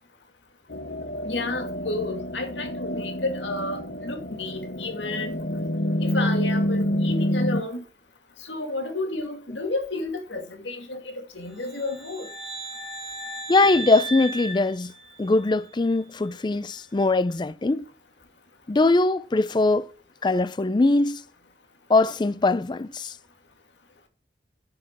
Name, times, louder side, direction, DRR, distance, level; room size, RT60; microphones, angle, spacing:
sound 1, 0.7-7.6, left 1 dB, 60° left, 1.0 m, -28 dB
voice 1, 1.2-5.4 6.0-7.8 8.4-12.3, left 2 dB, 85° left, 2.2 m, -31 dB
sound 2, 11.6-15.6, right 2 dB, 35° right, 1.4 m, -36 dB
voice 2, 13.5-14.9 15.2-17.9 18.7-19.9 20.2-21.2 21.9-23.1, left 2 dB, 25° left, 0.4 m, -21 dB
12.0 x 6.1 x 5.9 m
head